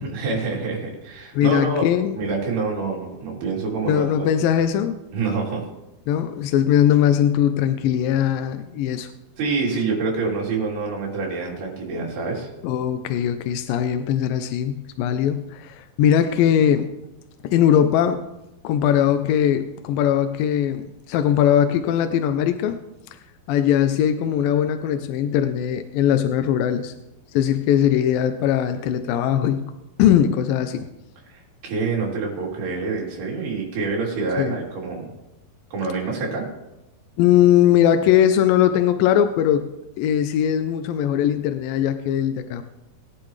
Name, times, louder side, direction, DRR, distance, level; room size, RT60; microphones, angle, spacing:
voice 1, 0.0-1.9 2.1-4.1 5.1-5.7 9.4-12.5 31.3-35.1 35.7-36.5, right 4 dB, 75° right, -3 dB, 5.3 m, -26 dB
voice 2, 1.4-2.2 3.9-5.0 6.1-9.1 12.6-16.9 17.4-18.2 18.6-22.8 23.5-26.9 27.3-29.6 30.0-30.9 34.4-34.6 37.2-39.7 40.0-42.6, left 10 dB, 80° left, 8 dB, 2.1 m, -20 dB
21.5 x 10.5 x 3.2 m, 0.94 s
omnidirectional pair, 4.6 m